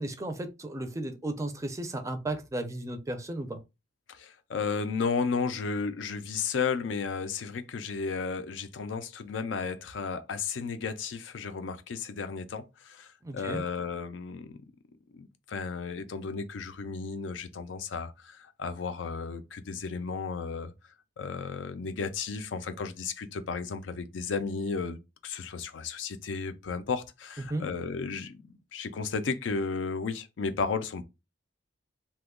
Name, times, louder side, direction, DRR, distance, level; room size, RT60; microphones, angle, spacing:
voice 1, 0.0-3.6 13.2-13.6 27.5-27.7, right 1 dB, 15° right, 0.4 m, -34 dB
voice 2, 4.1-14.5 15.1-20.7 21.2-31.0, left 5 dB, 75° left, 0.4 m, -33 dB
2.8 x 2.2 x 3.5 m
head